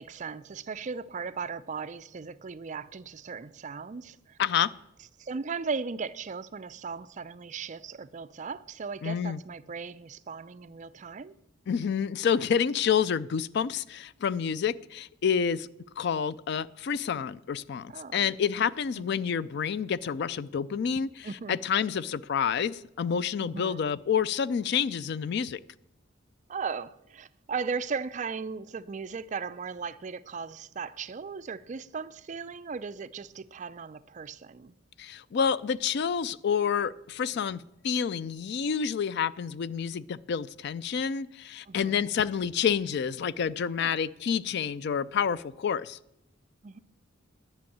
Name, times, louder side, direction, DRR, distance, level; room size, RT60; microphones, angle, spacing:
voice 1, 0.0-4.4 5.2-11.3 17.9-18.3 19.0-19.3 21.2-21.6 23.4-23.9 26.5-34.7 41.7-42.0 43.8-44.0 46.6-46.8, right 5 dB, 40° right, 0.4 m, -37 dB
voice 2, 4.4-4.7 9.0-9.4 11.7-15.7 16.0-25.6 35.0-46.0, left 7 dB, 55° left, 0.4 m, -28 dB
10.5 x 6.2 x 8.5 m
head